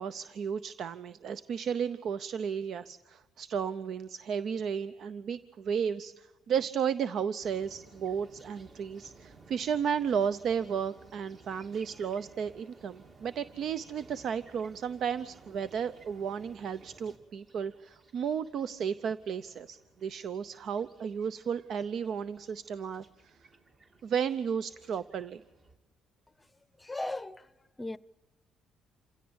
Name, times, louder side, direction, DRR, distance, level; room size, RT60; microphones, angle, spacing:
voice 1, 0.0-23.4 24.0-25.4, right 7 dB, 60° right, 0.7 m, -33 dB
sound 1, 7.4-25.8, right 3 dB, 40° right, 3.1 m, -57 dB
voice 2, 26.8-27.5 27.8-28.0, left 2 dB, 15° left, 0.8 m, -36 dB
28.0 x 16.5 x 8.8 m
cardioid pair, 110°, 0 cm